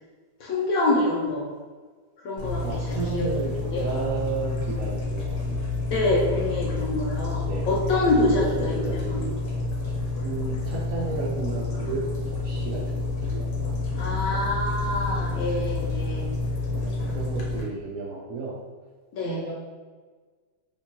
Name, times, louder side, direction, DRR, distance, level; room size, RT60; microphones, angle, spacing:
voice 1, 0.4-1.5 2.2-3.3 3.7-3.9 5.9-9.2 13.9-16.3 19.1-19.5, left 2 dB, 70° left, -4 dB, 0.8 m, -26 dB
sound 1, 2.4-17.6, left 3 dB, 90° left, 1.4 m, -29 dB
voice 2, 2.6-5.6 7.4-7.7 8.4-9.4 10.2-13.5 16.7-18.5 19.2-19.5, right 4 dB, 75° right, -5 dB, 0.8 m, -33 dB
3.2 x 2.9 x 2.9 m, 1.4 s
omnidirectional pair, 1.9 m